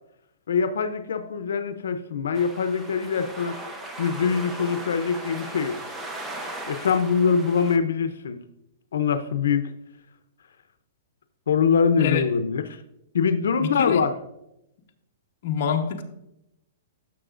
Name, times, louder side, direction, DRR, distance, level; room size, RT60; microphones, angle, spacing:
voice 1, 0.5-3.5 4.0-5.8 6.7-8.4 8.9-9.7 11.5-12.6 13.1-14.2, left 6 dB, 90° left, 0.6 m, -23 dB
sound 1, 2.3-7.8, right 1 dB, 10° right, 0.7 m, -37 dB
voice 2, 13.6-14.0 15.4-16.0, left 7 dB, 45° left, 0.9 m, -26 dB
11.5 x 6.8 x 2.5 m
hypercardioid pair, 170°, 0 cm